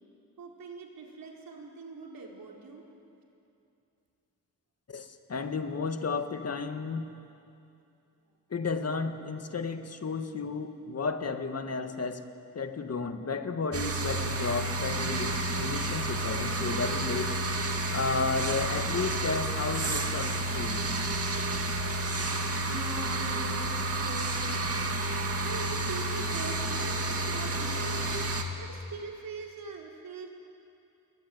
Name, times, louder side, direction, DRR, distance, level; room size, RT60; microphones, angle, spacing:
voice 1, 0.4-2.8 22.7-24.7 25.4-28.2 28.6-30.3, right 4 dB, 80° right, -1 dB, 4.7 m, -42 dB
voice 2, 4.9-7.1 8.5-12.2 12.5-17.4 17.9-20.9, left 4 dB, 45° left, 8 dB, 1.7 m, -33 dB
sound 1, 13.7-28.4, right 2 dB, 45° right, 2.3 m, -30 dB
28.5 x 22.0 x 9.5 m, 2.7 s
wide cardioid pair, 110°, 34 cm